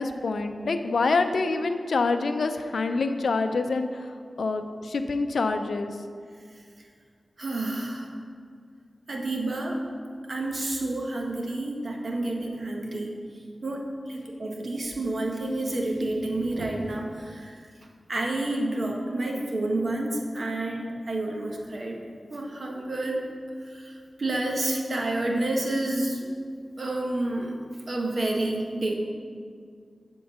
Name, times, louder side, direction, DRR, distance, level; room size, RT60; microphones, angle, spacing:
voice 1, 0.0-6.0, left 3 dB, 85° left, 8 dB, 0.4 m, -26 dB
voice 2, 7.4-8.1 9.1-9.8 10.3-13.2 13.6-17.5 18.1-22.0 22.3-23.3 23.6-26.3 26.8-27.6 27.9-28.9, right 2 dB, 60° right, 0 dB, 1.1 m, -29 dB
7.9 x 3.8 x 6.7 m, 2.1 s
wide cardioid pair, 75°, 0 cm